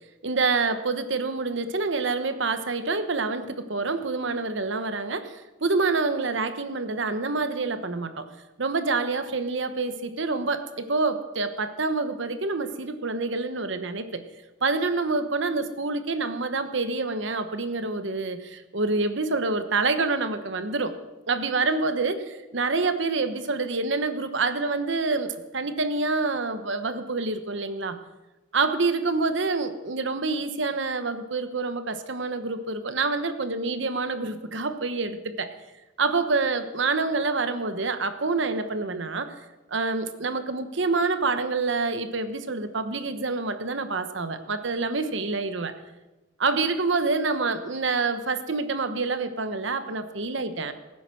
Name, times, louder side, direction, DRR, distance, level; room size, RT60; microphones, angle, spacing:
voice 1, 0.2-8.2 8.6-14.2 14.6-20.9 21.3-28.0 28.5-35.5 36.0-39.3 39.7-45.7 46.4-50.7, right 3 dB, 65° right, 10 dB, 1.1 m, -27 dB
17.5 x 9.9 x 6.2 m, 1.1 s
head